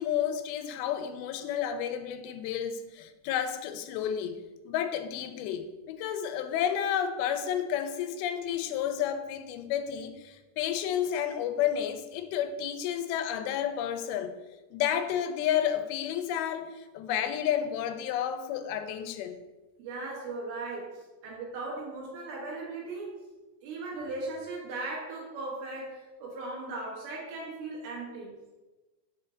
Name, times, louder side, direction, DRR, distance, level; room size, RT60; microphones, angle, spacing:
voice 1, 0.0-14.3 14.7-19.4, left 9 dB, 90° left, 9 dB, 2.5 m, -31 dB
voice 2, 19.8-23.1 23.6-28.3, right 2 dB, 85° right, -3 dB, 3.4 m, -38 dB
6.2 x 4.5 x 3.7 m, 1.1 s
omnidirectional pair, 4.3 m